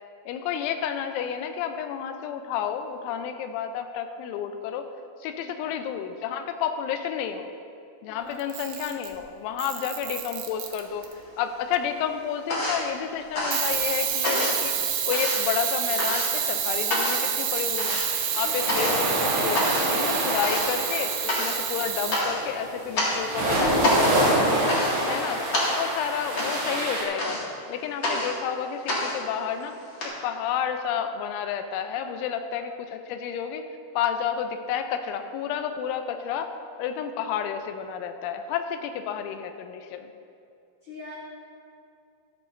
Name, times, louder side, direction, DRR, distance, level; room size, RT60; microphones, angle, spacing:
voice 1, 0.3-4.9 5.2-7.5 8.0-11.1 11.4-14.8 15.1-18.0 18.3-19.6 19.9-24.0 25.1-27.4 27.7-29.8 30.0-33.7 33.9-36.5 36.8-40.1, left 8 dB, 85° left, 7 dB, 2.8 m, -30 dB
voice 2, 5.3-5.6 8.1-8.5 18.4-18.9 32.0-32.6 38.9-39.1 40.8-41.2, left 1 dB, 35° left, -9 dB, 2.8 m, -46 dB
Camera, 8.4-9.2 9.6-11.1 13.5-22.2, right 9 dB, 80° right, 3.4 m, -28 dB
sound 1, 10.7-11.5 11.8-30.1, left 1 dB, 60° left, 1.2 m, -29 dB
sound 2, 17.6-27.0, right 1 dB, 60° right, 4.1 m, -27 dB
13.5 x 12.0 x 2.6 m, 2.5 s
omnidirectional pair, 5.9 m